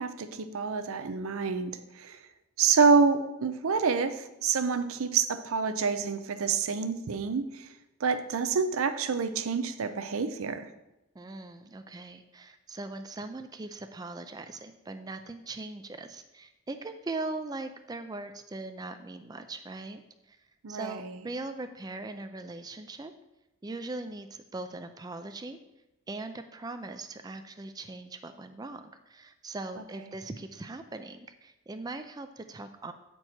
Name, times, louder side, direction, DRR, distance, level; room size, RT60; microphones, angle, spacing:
voice 1, 0.0-2.2 2.6-7.7 8.0-10.7 20.6-21.2, right 5 dB, 75° right, 11 dB, 0.5 m, -27 dB
voice 2, 11.1-20.0 20.3-20.4 20.7-23.1 23.6-25.6 26.1-32.9, right 2 dB, 20° right, 8 dB, 0.3 m, -40 dB
8.8 x 4.6 x 4.3 m, 0.94 s
head